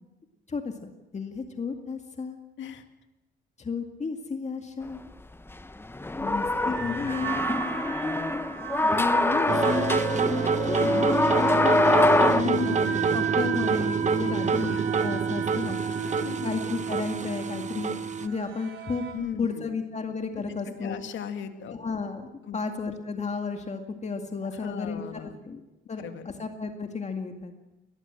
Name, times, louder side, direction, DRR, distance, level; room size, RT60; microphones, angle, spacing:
voice 1, 0.5-2.4 3.6-5.0 6.2-7.8 8.8-15.8 16.4-19.0 19.4-21.0 21.7-22.3 22.5-25.0 25.4-25.6 25.9-27.5, left 4 dB, 35° left, 5 dB, 2.1 m, -33 dB
sound 1, 5.9-12.4, left 2 dB, 10° left, 1.1 m, -24 dB
sound 2, 6.5-19.1, right 9 dB, 75° right, 4.1 m, -38 dB
sound 3, 9.5-18.3, right 5 dB, 35° right, 1.1 m, -27 dB
voice 2, 10.7-13.3 14.2-14.6 16.0-16.5 19.1-19.7 20.5-21.8 22.4-22.6 24.4-25.4 26.0-26.3, left 7 dB, 75° left, 7 dB, 2.3 m, -37 dB
22.5 x 18.5 x 7.6 m, 1.0 s
cardioid pair, 90°, 20 cm